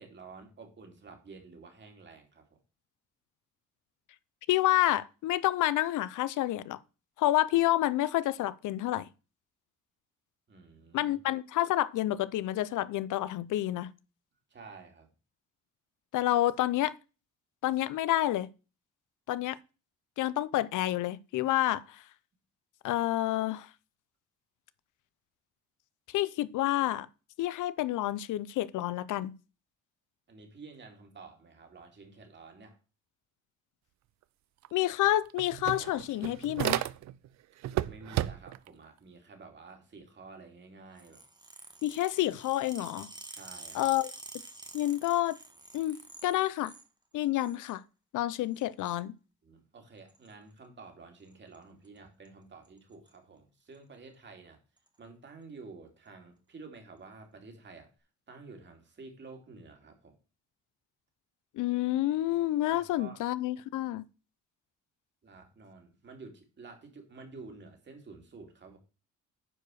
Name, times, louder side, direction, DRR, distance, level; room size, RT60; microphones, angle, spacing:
voice 1, 0.0-2.6 10.5-11.1 14.5-15.1 30.3-32.8 37.8-41.2 43.3-43.9 49.4-54.6 55.0-57.9 58.3-60.2 62.7-63.2 65.2-68.8, right 4 dB, 35° right, 2.7 m, -50 dB
voice 2, 4.5-6.8 7.2-9.1 10.9-13.9 16.1-16.9 17.6-18.5 19.3-19.6 20.2-22.0 22.8-23.7 26.1-27.1 27.4-29.3 34.7-36.9 41.8-43.1 43.7-44.1 44.7-45.4 45.7-46.7 47.1-47.8 48.1-49.1 61.6-64.0, left 14 dB, 85° left, 0.6 m, -29 dB
sound 1, 34.6-34.7 35.0-37.3 37.6-38.7, right 14 dB, 65° right, 0.5 m, -33 dB
sound 2, 41.0-46.9 47.2-47.8 48.5-49.0 50.1-50.3 51.3-51.6 51.9-52.0 52.3-52.4 52.7-53.1 53.7-53.8 54.8-54.9, right 2 dB, 15° right, 1.4 m, -49 dB
9.9 x 4.8 x 6.3 m
cardioid pair, 135°, 30 cm